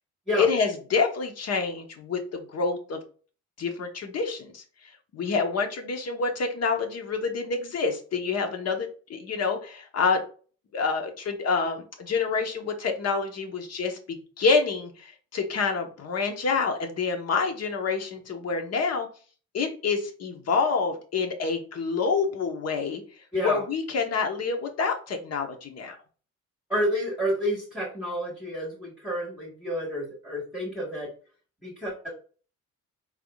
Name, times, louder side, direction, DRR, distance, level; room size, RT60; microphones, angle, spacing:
voice 1, 0.4-3.0 3.6-4.6 5.1-10.2 10.7-19.1 19.5-23.0 23.4-26.0, left 4 dB, 55° left, 5 dB, 1.1 m, -27 dB
voice 2, 23.3-23.6 26.7-31.1 31.6-32.1, equal, 5° right, -5 dB, 1.6 m, -29 dB
4.9 x 3.5 x 2.4 m, 0.39 s
cardioid pair, 90°, 30 cm